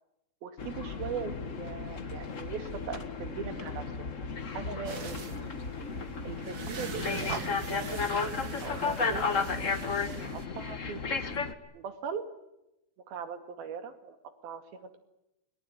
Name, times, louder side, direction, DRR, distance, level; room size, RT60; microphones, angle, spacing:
voice 1, 0.4-4.1 4.5-5.3 6.2-7.4 7.7-8.0 8.6-9.5 10.2-11.2 11.7-12.3 13.1-14.2 14.4-15.0, right 6 dB, 80° right, 8 dB, 4.2 m, -40 dB
sound 1, 0.6-11.5, left 5 dB, 80° left, 0.7 m, -34 dB
sound 2, 4.8-10.4, right 5 dB, 45° right, 1.2 m, -42 dB
28.5 x 23.0 x 9.0 m, 0.89 s
omnidirectional pair, 4.3 m